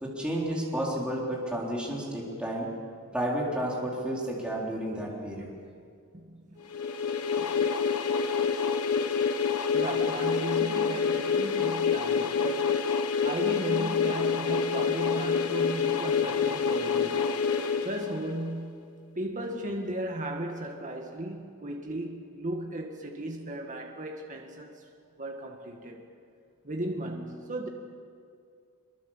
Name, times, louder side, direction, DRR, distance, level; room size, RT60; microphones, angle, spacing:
voice 1, 0.0-2.7 3.1-5.5, right 1 dB, 5° right, -4 dB, 3.9 m, -31 dB
voice 2, 6.1-6.6 7.4-7.7 9.7-12.9 13.2-17.3 17.8-18.9 19.2-24.8 25.2-26.0 26.6-27.7, right 1 dB, 35° right, 2 dB, 1.8 m, -36 dB
sound 1, 6.7-18.5, left 6 dB, 90° left, 1.3 m, -27 dB
23.5 x 23.0 x 7.4 m, 2.3 s
head